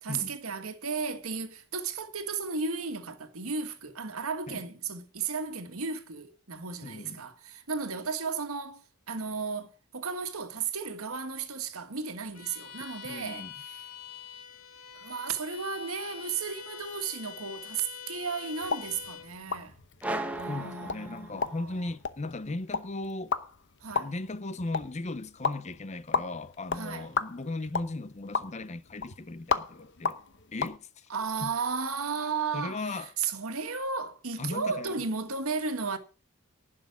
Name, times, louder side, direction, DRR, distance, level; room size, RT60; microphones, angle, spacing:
voice 1, 0.0-13.5 14.9-19.8 20.3-21.6 23.8-24.1 26.7-27.1 31.1-36.0, right 5 dB, 75° right, 1.7 m, -34 dB
voice 2, 6.8-7.3 13.0-13.5 20.5-23.4 23.9-30.2 30.5-31.1 31.4-31.5 32.5-33.1 34.4-34.9, left 2 dB, 30° left, 0.6 m, -37 dB
Bowed string instrument, 12.3-19.3, left 9 dB, 80° left, 2.3 m, -45 dB
sound 1, 18.6-30.8, left 5 dB, 55° left, 0.9 m, -35 dB
sound 2, 20.0-21.8, right 2 dB, 5° right, 1.2 m, -36 dB
11.5 x 6.2 x 8.0 m
head